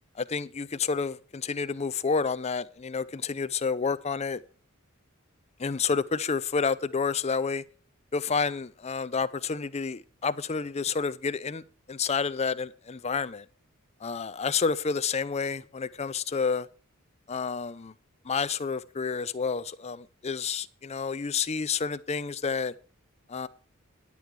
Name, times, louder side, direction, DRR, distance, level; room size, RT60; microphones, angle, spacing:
voice 1, 0.2-4.4 5.6-7.6 8.1-11.6 11.9-13.5 14.0-16.7 17.3-17.9 18.2-22.7 23.3-23.5, left 5 dB, 30° left, 0.5 m, -29 dB
10.5 x 8.4 x 4.6 m
head